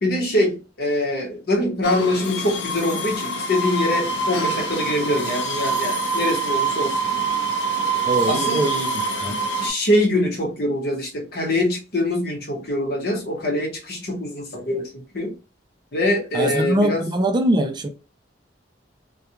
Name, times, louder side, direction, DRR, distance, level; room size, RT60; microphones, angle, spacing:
voice 1, 0.0-7.0 8.3-8.6 9.6-15.3 15.9-17.0, left 1 dB, 60° left, 1.0 m, -23 dB
sound 1, 1.8-9.7, right 3 dB, 85° left, 0.6 m, -25 dB
voice 2, 8.1-8.9 9.2-9.4 16.3-17.9, right 1 dB, 25° right, 0.3 m, -22 dB
2.3 x 2.3 x 2.8 m
head